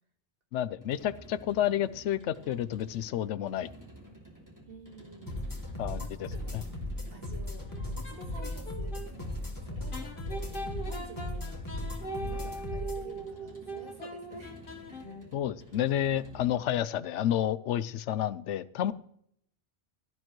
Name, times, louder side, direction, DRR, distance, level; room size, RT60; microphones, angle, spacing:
voice 1, 0.5-3.7 5.8-6.3 15.3-18.9, left 11 dB, 85° left, 17 dB, 0.9 m, -30 dB
sound 1, 0.7-16.9, right 1 dB, 15° right, 2.5 m, -52 dB
voice 2, 4.7-5.4 5.7-6.7 7.1-11.9 12.1-15.3 18.8-18.9, right 2 dB, 50° right, 4 dB, 2.1 m, -51 dB
sound 2, 5.3-13.0, left 1 dB, 15° left, 2.3 m, -37 dB
sound 3, 7.7-9.1 9.9-15.4, right 2 dB, 50° left, 1.5 m, -41 dB
17.0 x 11.0 x 3.1 m, 0.69 s
omnidirectional pair, 1.2 m